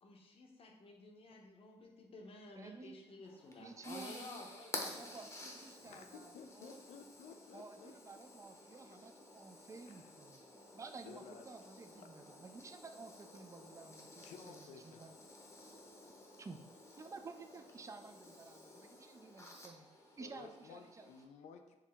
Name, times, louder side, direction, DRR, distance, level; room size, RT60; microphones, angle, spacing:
voice 1, 0.0-5.2, left 2 dB, 55° left, 1 dB, 0.9 m, -53 dB
voice 2, 2.6-2.9 3.6-4.5 5.0-6.3 6.6-6.8 7.5-10.4 10.7-15.1 16.4-16.6 17.0-19.9 20.2-21.1, right 4 dB, 25° right, 7 dB, 0.4 m, -53 dB
sound 1, 3.3-21.2, left 2 dB, 25° left, 0.8 m, -53 dB
voice 3, 5.8-7.9 9.9-10.1 11.1-11.5 12.0-12.1 14.2-15.2 20.2-21.8, left 6 dB, 85° left, 7 dB, 0.4 m, -55 dB
4.6 x 2.8 x 3.5 m, 1.0 s
cardioid pair, 85°, 12 cm